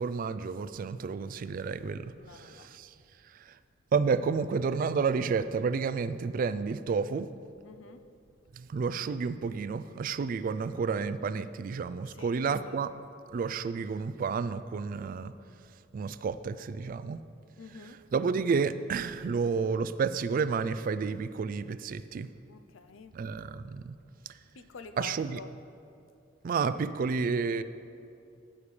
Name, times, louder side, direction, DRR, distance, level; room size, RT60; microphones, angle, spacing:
voice 1, 0.0-2.9 3.5-3.6 3.9-7.3 8.5-12.9 13.3-15.3 15.9-17.2 18.1-22.3 23.1-24.0 25.0-25.4 26.4-27.6, right 5 dB, 45° right, 14 dB, 0.3 m, -30 dB
voice 2, 2.1-2.7 7.6-8.0 12.1-12.4 12.6-12.8 17.6-18.0 22.5-23.2 24.5-25.6, left 4 dB, 85° left, 10 dB, 0.5 m, -48 dB
14.5 x 8.5 x 3.3 m, 2.6 s
head